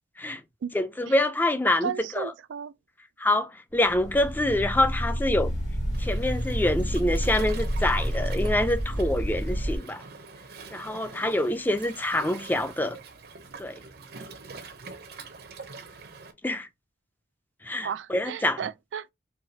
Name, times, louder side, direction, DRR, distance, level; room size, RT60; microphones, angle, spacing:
voice 1, 0.7-2.3 3.2-5.5 6.0-10.0 10.7-13.0 13.6-13.8 16.4-16.7 17.6-18.7, left 1 dB, 10° left, 0.4 m, -26 dB
voice 2, 1.8-2.7 17.8-19.1, right 7 dB, 80° right, 0.3 m, -34 dB
sound 1, 3.8-9.8, equal, 70° left, 2.5 m, -29 dB
Waves surf, 5.9-16.3, right 4 dB, 60° right, 0.7 m, -45 dB
4.6 x 2.8 x 2.7 m
head